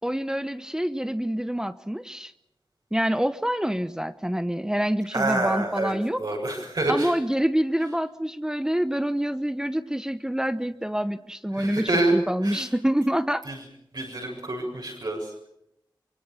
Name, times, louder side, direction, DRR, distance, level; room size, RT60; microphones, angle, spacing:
voice 1, 0.0-2.3 2.9-6.2 6.9-13.4, equal, 10° right, 11 dB, 0.9 m, -26 dB
voice 2, 5.1-5.9 6.2-7.1 11.5-12.1 12.4-12.7 13.5-13.6 13.9-15.5, right 2 dB, 65° right, -2 dB, 7.1 m, -27 dB
24.5 x 24.0 x 7.2 m, 0.79 s
wide cardioid pair, 80°, 8 cm